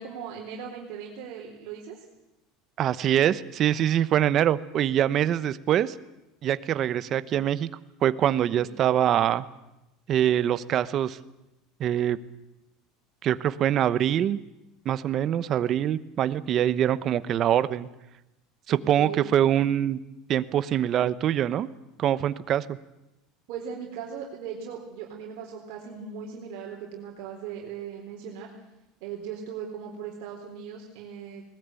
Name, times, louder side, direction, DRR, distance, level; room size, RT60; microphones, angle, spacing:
voice 1, 0.0-2.0 8.6-8.8 18.7-19.2 23.5-28.5 29.0-31.4, right 7 dB, 60° right, -1 dB, 4.0 m, -38 dB
voice 2, 2.8-5.9 6.4-7.7 8.0-9.4 10.1-11.2 11.8-12.2 13.2-14.4 14.8-17.9 18.7-20.0 20.3-21.7 22.0-22.8, right 10 dB, 30° right, 15 dB, 0.9 m, -24 dB
21.0 x 19.5 x 9.0 m, 0.93 s
cardioid pair, 170°, 0 cm